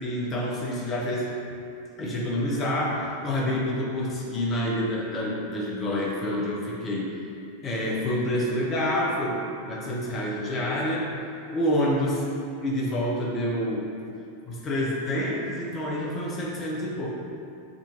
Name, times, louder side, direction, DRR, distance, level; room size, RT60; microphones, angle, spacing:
voice 1, 0.0-1.3 2.0-7.1 7.6-9.4 9.7-11.1 11.5-12.2 12.6-13.9 14.5-17.1, left 1 dB, 25° left, -3 dB, 1.1 m, -27 dB
7.6 x 4.3 x 3.1 m, 2.5 s
figure-of-eight pair, 90°, 0 cm